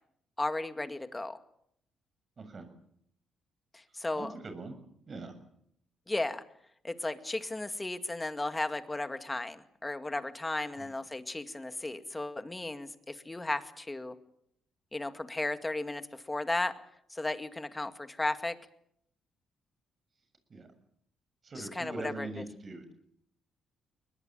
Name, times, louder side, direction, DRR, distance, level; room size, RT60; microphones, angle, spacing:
voice 1, 0.4-1.4 3.7-4.3 6.1-6.4 6.8-14.2 14.9-16.7 17.1-18.6 21.6-22.3, left 2 dB, 15° left, 10 dB, 2.1 m, -35 dB
voice 2, 2.4-2.7 4.2-4.7 5.1-5.3 10.8-10.9 20.5-20.7 21.4-22.9, right 3 dB, 40° right, 8 dB, 7.2 m, -42 dB
22.5 x 20.5 x 9.0 m, 0.70 s
cardioid pair, 90°, 0 cm